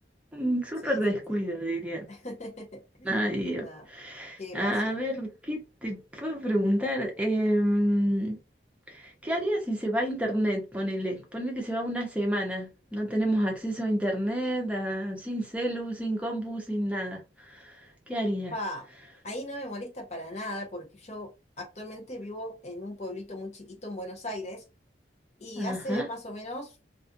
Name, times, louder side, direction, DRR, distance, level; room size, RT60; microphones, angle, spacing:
voice 1, 0.3-2.0 3.0-8.4 8.9-17.2 17.5-17.8 18.1-18.5 25.5-26.1, equal, 5° right, 0.7 m, -29 dB
voice 2, 0.8-1.4 2.1-3.1 3.6-3.8 4.4-4.9 18.5-18.8 19.2-21.3 21.6-24.6 25.4-26.7, left 1 dB, 40° left, 0.8 m, -38 dB
2.4 x 2.4 x 2.6 m
head